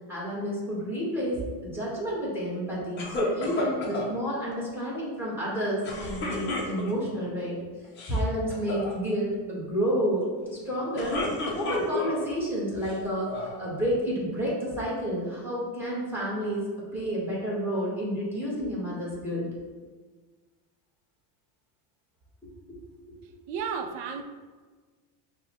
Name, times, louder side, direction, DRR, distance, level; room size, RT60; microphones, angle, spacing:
voice 1, 0.1-7.6 8.1-11.2 11.5-16.6 16.9-19.5 22.7-22.8 23.1-23.2, equal, 5° right, -6 dB, 1.0 m, -30 dB
sound 1, 3.0-4.1 5.8-7.1 7.8-8.2 8.5-8.9 10.7-12.2 12.8-13.6, left 2 dB, 25° left, 0.4 m, -32 dB
voice 2, 23.5-24.2, right 6 dB, 80° right, 7 dB, 0.6 m, -32 dB
6.2 x 2.2 x 2.9 m, 1.4 s
cardioid pair, 160°, 49 cm